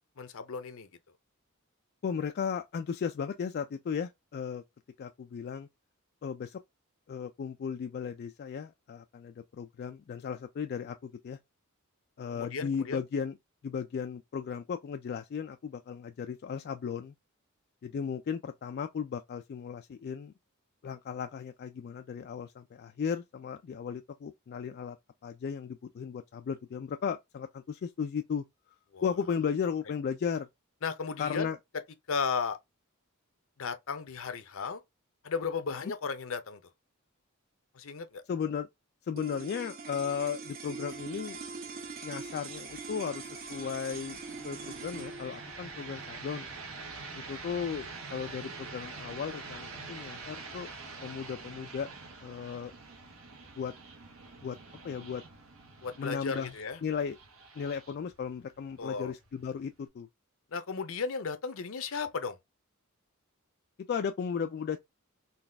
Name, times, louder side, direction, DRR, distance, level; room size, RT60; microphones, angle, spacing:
voice 1, 0.2-0.9 12.3-13.0 28.9-29.0 30.8-31.5 32.1-32.6 33.6-34.8 35.2-36.6 37.7-38.2 55.8-56.8 58.8-59.1 60.5-62.4, left 5 dB, 70° left, 0.7 m, -35 dB
voice 2, 2.0-4.6 5.0-5.7 6.2-6.6 7.1-11.4 12.2-13.4 13.6-17.1 17.8-20.3 20.8-25.0 25.2-28.4 29.0-30.5 31.2-31.6 35.8-35.9 38.3-38.7 39.0-41.4 42.0-46.5 47.1-50.7 51.0-51.9 52.2-52.7 53.6-53.7 54.4-54.6 54.8-55.2 56.0-56.5 56.8-57.2 57.6-60.1 63.9-64.8, left 6 dB, 50° left, 0.3 m, -35 dB
sound 1, 39.1-49.6, right 4 dB, 45° right, 0.8 m, -44 dB
sound 2, 40.9-59.9, right 4 dB, 75° right, 1.1 m, -47 dB
4.0 x 2.3 x 3.3 m
head